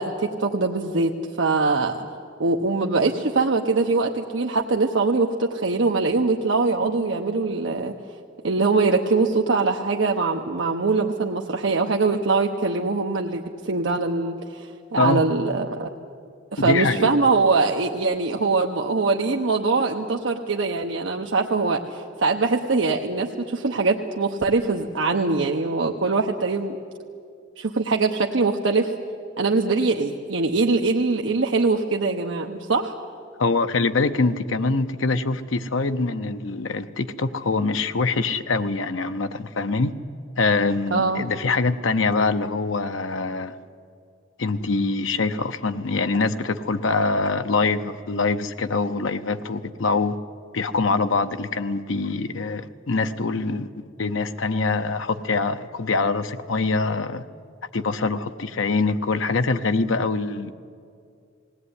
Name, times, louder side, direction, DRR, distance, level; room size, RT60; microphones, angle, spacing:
voice 1, 0.0-2.1 2.4-7.9 8.4-15.9 16.5-26.7 27.6-28.9 29.4-33.0 40.9-41.2, right 3 dB, 70° right, 1 dB, 0.9 m, -22 dB
voice 2, 16.6-17.1 33.4-39.9 40.4-43.6 44.4-50.2 50.5-57.2 57.7-60.5, left 3 dB, 85° left, 10 dB, 0.7 m, -24 dB
19.5 x 17.5 x 9.6 m, 2.3 s
head